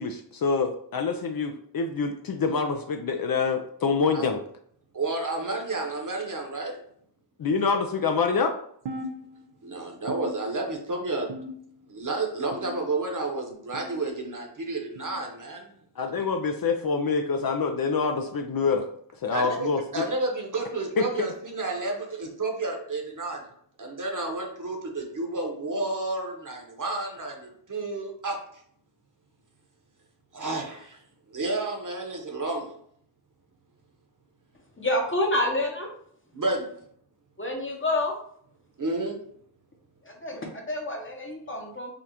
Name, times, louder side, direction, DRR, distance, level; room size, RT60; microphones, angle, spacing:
voice 1, 0.0-4.4 7.4-8.5 16.0-18.9 19.2-20.0 21.0-21.1, left 5 dB, 55° left, 5 dB, 0.4 m, -26 dB
voice 2, 4.9-6.7 9.6-11.3 11.9-15.7 19.3-19.7 19.9-23.5 23.8-28.4 30.3-31.0 31.3-32.6 36.3-36.7 38.8-39.2, right 2 dB, 45° right, 1 dB, 1.0 m, -31 dB
sound 1, 8.9-9.7 10.1-10.9 11.3-11.9 12.5-13.1 13.7-14.1 15.0-15.2 16.2-16.4 17.4-17.6 18.6-18.8 19.8-20.0 21.1-21.2 22.3-22.4 23.5-23.6, equal, 70° right, 0.6 m, -40 dB
voice 3, 34.8-35.9 37.4-38.1 40.0-41.9, left 1 dB, 30° left, 1 dB, 0.9 m, -28 dB
5.0 x 2.4 x 2.8 m, 0.64 s
wide cardioid pair, 80°, 44 cm